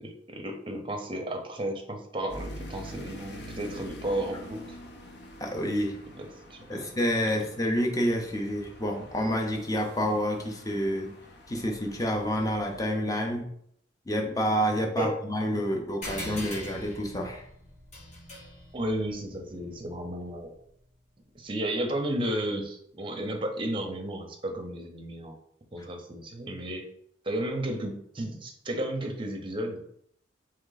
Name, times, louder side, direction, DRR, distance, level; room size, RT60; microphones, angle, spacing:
voice 1, 0.0-4.8 6.1-6.9 7.3-7.4 15.0-15.1 18.7-20.5 21.3-25.4 25.7-26.8 27.2-29.8, right 1 dB, 25° right, 3 dB, 0.6 m, -33 dB
sound 1, 2.3-12.9, equal, 60° left, 0.6 m, -46 dB
voice 2, 5.4-6.0 6.7-11.1 11.5-13.5 14.1-17.4, equal, 20° left, 2 dB, 0.6 m, -28 dB
sound 2, 16.0-20.9, left 1 dB, 40° left, 1.5 m, -43 dB
3.7 x 3.2 x 3.9 m, 0.70 s
head